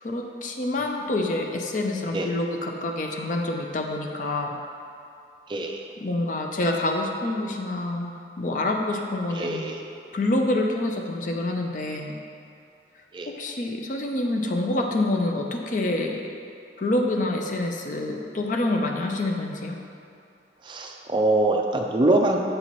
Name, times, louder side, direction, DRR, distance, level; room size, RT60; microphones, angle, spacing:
voice 1, 0.0-4.6 6.0-9.7 10.1-12.1 13.3-16.2 16.8-19.8, left 2 dB, 45° left, 2 dB, 0.5 m, -27 dB
voice 2, 5.5-5.8 9.3-9.8 13.1-13.3 20.6-22.4, right 2 dB, 25° right, 2 dB, 0.4 m, -23 dB
7.7 x 4.2 x 3.0 m, 2.5 s
head